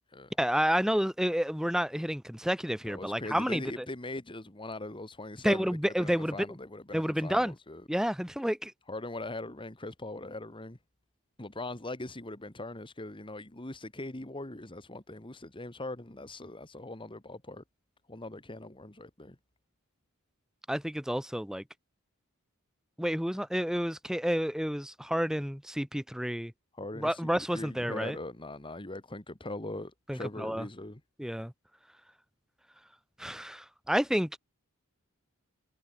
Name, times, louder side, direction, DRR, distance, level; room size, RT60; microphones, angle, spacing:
voice 1, 0.4-3.9 5.4-6.4 6.9-7.5 7.9-8.7 20.7-21.6 23.0-26.5 27.0-28.2 30.1-30.7 31.2-31.5 33.2-34.4, equal, 5° right, 1.9 m, -30 dB
voice 2, 2.8-7.8 8.9-10.8 11.4-17.6 18.1-19.4 26.7-31.0, left 2 dB, 25° left, 1.8 m, -41 dB
head